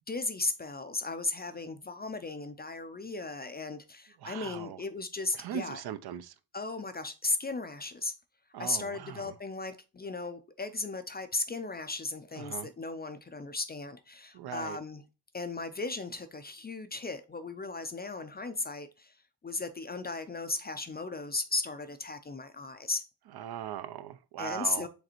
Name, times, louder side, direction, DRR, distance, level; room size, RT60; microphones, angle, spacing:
voice 1, 0.1-5.8 6.5-8.1 8.6-15.0 15.3-19.1 19.4-23.0 24.4-24.9, left 3 dB, 25° left, 0.4 m, -36 dB
voice 2, 4.2-4.8 5.3-6.3 8.5-9.3 12.4-12.7 14.3-14.8 23.3-24.9, right 10 dB, 60° right, 0.5 m, -39 dB
5.0 x 3.2 x 2.9 m
cardioid pair, 105°, 43 cm